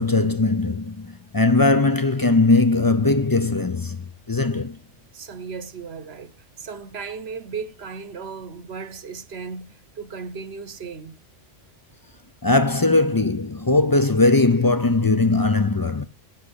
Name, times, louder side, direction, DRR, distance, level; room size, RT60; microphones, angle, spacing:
voice 1, 0.0-4.8 12.4-16.0, left 3 dB, 30° left, 0.4 m, -19 dB
voice 2, 5.1-11.2, right 5 dB, 60° right, 1.1 m, -36 dB
8.6 x 7.9 x 8.2 m
omnidirectional pair, 1.3 m